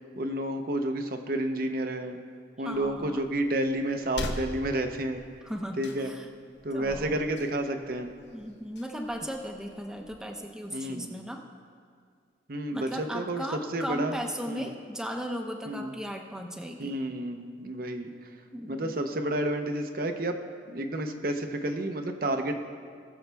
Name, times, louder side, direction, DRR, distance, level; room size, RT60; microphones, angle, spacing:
voice 1, 0.2-2.2 2.6-5.2 5.8-6.1 6.6-8.1 10.7-11.1 12.5-14.2 14.5-14.7 15.7-15.9 16.8-18.3 18.7-20.4 20.7-22.6, right 1 dB, 55° right, 5 dB, 0.7 m, -30 dB
voice 2, 2.6-3.2 5.4-6.3 6.7-7.2 8.3-11.4 12.7-17.0 18.5-19.0, equal, 5° right, 2 dB, 0.7 m, -37 dB
sound 1, 2.7-10.2, left 1 dB, 75° left, 0.9 m, -43 dB
20.0 x 7.1 x 3.4 m, 2.1 s
head